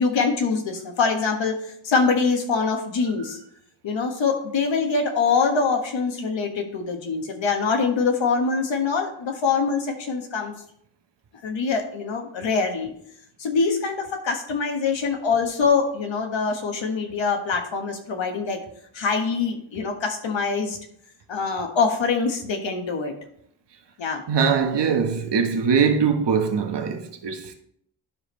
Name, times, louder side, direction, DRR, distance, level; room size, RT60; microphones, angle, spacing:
voice 1, 0.0-3.4 3.8-10.5 11.4-12.9 13.4-18.6 18.9-20.8 21.3-23.1 24.0-24.2, left 5 dB, 65° left, 1.6 m, -24 dB
voice 2, 24.3-27.5, right 6 dB, 55° right, 1.3 m, -22 dB
12.5 x 5.0 x 3.3 m
cardioid pair, 70°, 49 cm